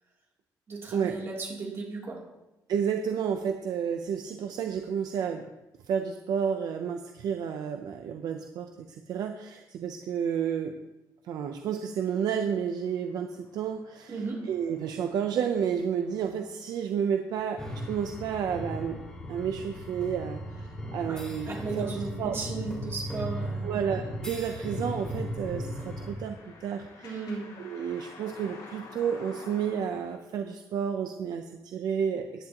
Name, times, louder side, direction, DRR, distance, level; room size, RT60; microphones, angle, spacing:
voice 1, 0.7-2.2 14.1-14.4 21.1-23.9 27.0-27.5, right 4 dB, 35° right, -3 dB, 3.1 m, -35 dB
voice 2, 2.7-5.4 5.9-10.7 11.2-14.2 14.5-19.0 19.3-22.4 23.6-27.1 27.6-32.5, right 7 dB, 65° right, 5 dB, 0.7 m, -31 dB
sound 1, 12.5-30.2, left 3 dB, 85° left, 4.4 m, -54 dB
sound 2, 17.6-26.1, equal, 10° left, 2.5 m, -37 dB
15.0 x 10.0 x 3.0 m, 1.0 s
cardioid pair, 165°, 7 cm